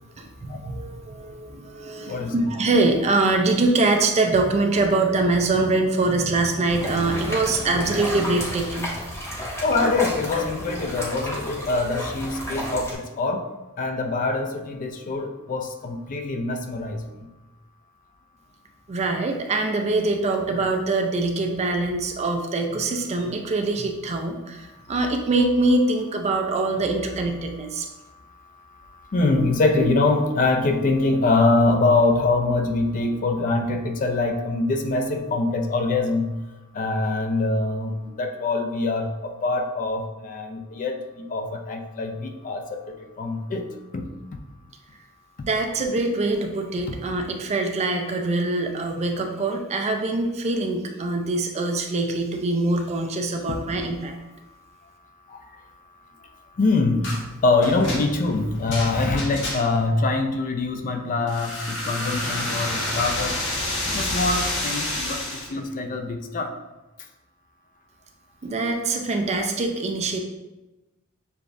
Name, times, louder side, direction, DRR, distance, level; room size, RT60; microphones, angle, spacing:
voice 1, 0.2-8.9 18.9-27.9 45.4-54.1 68.4-70.2, right 2 dB, 30° right, 4 dB, 0.4 m, -24 dB
sound 1, 6.7-12.9, equal, 15° left, 0.9 m, -32 dB
voice 2, 9.5-13.4 13.8-17.0 26.4-26.5 29.1-36.4 36.8-42.6 43.2-43.7 43.9-44.0 46.9-47.0 56.6-63.4 63.9-65.2 65.5-66.5, left 3 dB, 40° left, 5 dB, 0.4 m, -24 dB
sound 2, 57.0-57.2 57.6-59.9 61.3-65.5, left 1 dB, 55° left, 1.1 m, -29 dB
6.7 x 2.3 x 2.5 m, 1.0 s
head